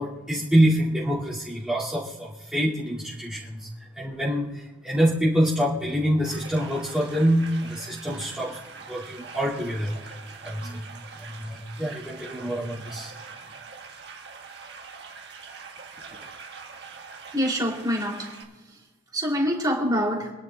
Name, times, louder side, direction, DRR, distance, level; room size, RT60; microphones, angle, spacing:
voice 1, 0.0-3.7 4.0-8.6 8.9-10.2 10.4-10.9 11.2-13.1, equal, 5° right, -11 dB, 2.4 m, -26 dB
sound 1, 6.3-18.4, right 5 dB, 55° right, 1.6 m, -43 dB
voice 2, 17.3-18.3 18.7-18.8 19.1-20.3, equal, 20° right, -2 dB, 3.0 m, -25 dB
27.5 x 11.0 x 2.3 m, 1.3 s
head